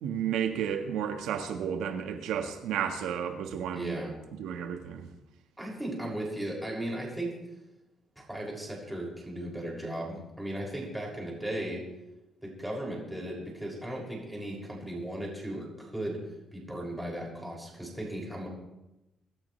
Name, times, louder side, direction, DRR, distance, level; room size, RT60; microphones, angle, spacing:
voice 1, 0.0-4.0 4.4-5.1, right 8 dB, 90° right, 1.6 m, -32 dB
voice 2, 3.7-4.1 5.6-7.3 8.1-11.8 12.4-16.2 16.5-18.5, right 1 dB, 5° right, 6.6 m, -36 dB
25.0 x 12.0 x 3.4 m
cardioid pair, 90°, 0 cm